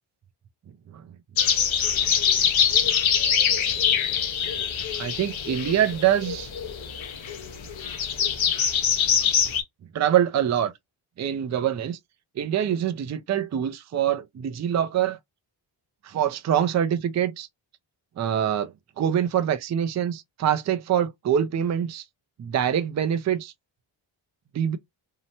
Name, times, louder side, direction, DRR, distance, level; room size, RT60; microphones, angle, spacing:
sound 1, 1.4-9.6, left 8 dB, 70° left, 0.8 m, -24 dB
voice 1, 2.4-2.9 3.7-4.0 5.0-6.5 9.9-10.7 11.2-12.0 12.4-15.2 16.0-17.5 18.2-22.0 22.4-23.5 24.5-24.8, right 9 dB, 35° right, 0.4 m, -25 dB
2.8 x 2.1 x 2.7 m
cardioid pair, 85°, 49 cm